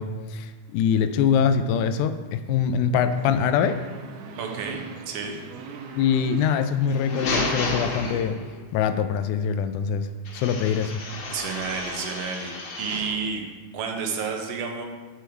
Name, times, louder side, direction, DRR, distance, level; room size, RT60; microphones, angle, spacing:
voice 1, 0.0-3.8 6.0-8.4 8.7-10.1 10.3-11.0, left 7 dB, 85° left, 10 dB, 2.0 m, -23 dB
sound 1, 3.1-8.2, right 5 dB, 80° right, 2.2 m, -41 dB
voice 2, 4.4-5.4 11.3-13.4 13.7-14.8, right 5 dB, 65° right, 2 dB, 1.8 m, -31 dB
sound 2, 6.8-8.7 10.3-13.2, left 2 dB, 55° left, 1.9 m, -31 dB
7.2 x 7.0 x 4.5 m, 1.3 s
omnidirectional pair, 3.5 m